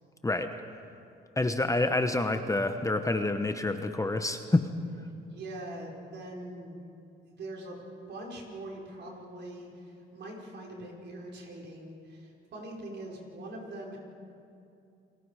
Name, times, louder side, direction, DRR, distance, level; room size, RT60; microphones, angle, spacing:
voice 1, 1.4-4.7, left 2 dB, 15° left, 7 dB, 1.1 m, -27 dB
voice 2, 5.3-6.9 7.2-7.8 8.1-14.0, right 1 dB, 60° right, -1 dB, 5.1 m, -42 dB
29.5 x 20.5 x 4.9 m, 2.7 s
cardioid pair, 90°, 20 cm